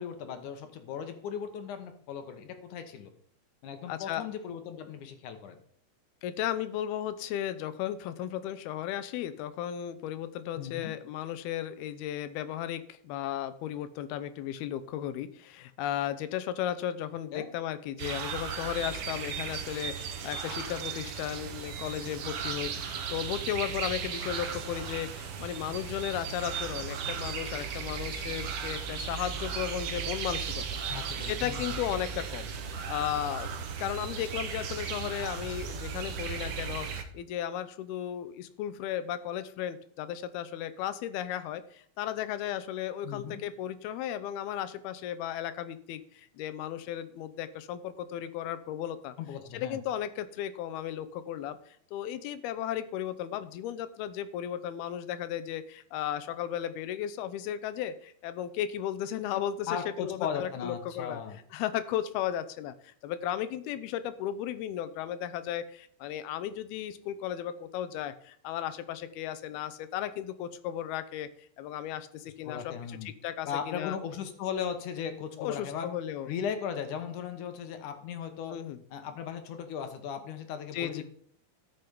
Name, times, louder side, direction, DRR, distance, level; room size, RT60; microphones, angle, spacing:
voice 1, 0.0-3.1 3.6-5.6 10.6-10.9 17.3-17.5 30.9-31.8 43.0-43.4 49.2-49.8 59.7-61.4 72.5-73.1 73.5-75.9 76.2-78.6 78.9-81.0, left 7 dB, 65° left, 8 dB, 2.4 m, -37 dB
voice 2, 3.9-4.3 6.2-30.8 31.3-49.2 49.5-61.2 61.5-71.3 71.6-74.0 75.4-76.3 78.5-78.8 80.7-81.0, left 11 dB, 85° left, 12 dB, 2.8 m, -35 dB
sound 1, 18.0-37.0, right 6 dB, 90° right, 1.2 m, -36 dB
13.5 x 6.1 x 5.3 m, 0.63 s
omnidirectional pair, 4.4 m